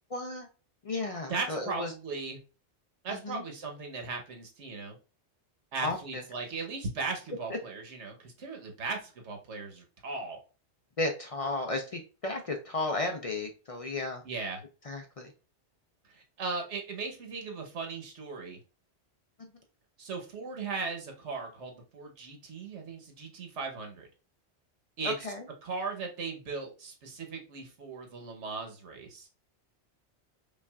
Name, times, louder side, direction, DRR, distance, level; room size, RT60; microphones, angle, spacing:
voice 1, 0.1-0.5 0.8-1.9 3.1-3.4 5.8-6.2 7.5-7.6 11.0-14.2 14.9-15.3 25.0-25.4, left 2 dB, 50° left, 3 dB, 0.4 m, -34 dB
voice 2, 1.3-2.4 3.0-5.0 5.7-10.4 14.2-14.6 16.1-18.6 20.0-24.1 25.0-25.1 25.6-29.3, right 4 dB, 90° right, 3 dB, 1.2 m, -37 dB
5.3 x 2.4 x 2.3 m, 0.33 s
omnidirectional pair, 1.2 m